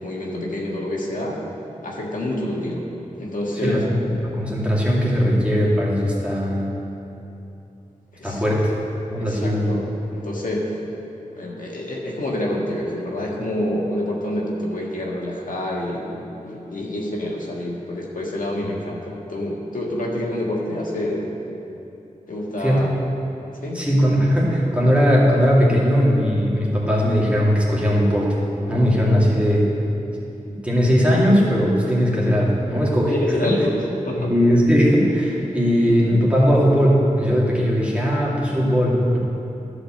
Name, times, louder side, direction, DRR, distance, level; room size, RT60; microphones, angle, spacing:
voice 1, 0.0-1.4 1.8-2.8 3.2-3.8 8.1-8.4 9.2-9.8 10.1-10.8 11.3-21.4 22.3-22.9 23.6-23.8 33.1-34.3, left 1 dB, 75° left, -3 dB, 1.6 m, -27 dB
voice 2, 3.6-6.7 8.2-8.7 9.1-9.8 22.6-22.9 23.7-28.4 28.7-29.7 30.6-33.1 33.4-33.6 34.1-39.2, equal, 10° right, -6 dB, 2.5 m, -19 dB
11.5 x 5.0 x 7.5 m, 2.9 s
wide cardioid pair, 60°, 14 cm